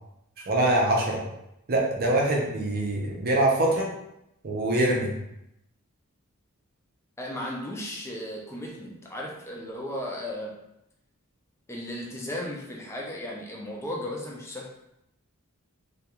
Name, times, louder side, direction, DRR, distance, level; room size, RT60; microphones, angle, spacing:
voice 1, 0.4-1.2 1.7-3.9 4.4-5.1, right 1 dB, 45° right, -2 dB, 0.6 m, -24 dB
voice 2, 7.2-10.6 11.7-14.7, left 1 dB, 10° left, -1 dB, 0.4 m, -35 dB
2.3 x 2.3 x 2.8 m, 0.83 s
head